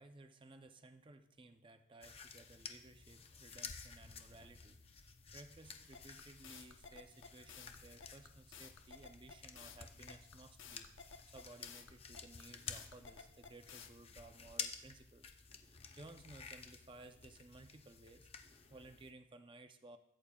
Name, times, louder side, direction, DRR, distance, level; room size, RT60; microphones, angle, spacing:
voice 1, 0.0-15.3 15.9-18.3 18.7-20.0, right 2 dB, 25° right, 8 dB, 0.6 m, -58 dB
sound 1, 2.0-19.1, left 6 dB, 30° left, 0.6 m, -52 dB
sound 2, 5.9-13.9, left 6 dB, 75° left, 0.8 m, -54 dB
16.0 x 8.6 x 2.3 m, 0.84 s
head